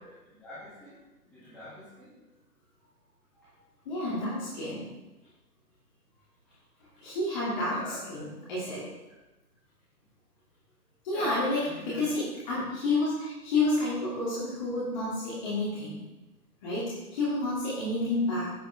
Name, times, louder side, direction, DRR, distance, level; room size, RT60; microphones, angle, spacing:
voice 1, 0.0-2.2 6.4-6.5 7.6-8.3 11.1-12.1, left 1 dB, ahead, -13 dB, 1.3 m, -45 dB
voice 2, 3.9-4.9 7.0-7.8 8.1-8.8 11.0-11.6 11.9-16.0 16.6-18.5, left 2 dB, 25° left, -8 dB, 2.4 m, -30 dB
10.0 x 8.7 x 3.4 m, 1.1 s
figure-of-eight pair, 140°, 49 cm